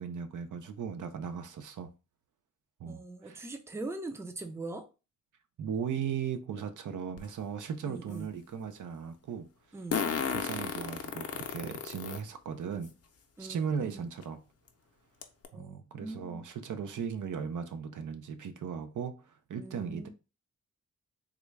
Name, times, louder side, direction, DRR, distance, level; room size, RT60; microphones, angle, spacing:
voice 1, 0.0-1.9 2.8-3.4 5.6-9.5 10.2-12.9 13.4-14.4 15.5-20.1, right 7 dB, 75° right, 0.5 m, -37 dB
voice 2, 2.9-4.8 7.8-8.3 9.7-10.0 13.4-14.0 15.5-16.5 19.5-20.1, right 2 dB, 10° right, 0.5 m, -42 dB
Fart, 7.2-7.3 9.9-12.2 12.8-12.9 14.2-14.3 14.7-14.8 15.2-15.5, left 6 dB, 50° left, 0.6 m, -33 dB
3.7 x 2.2 x 3.2 m
wide cardioid pair, 90°, 31 cm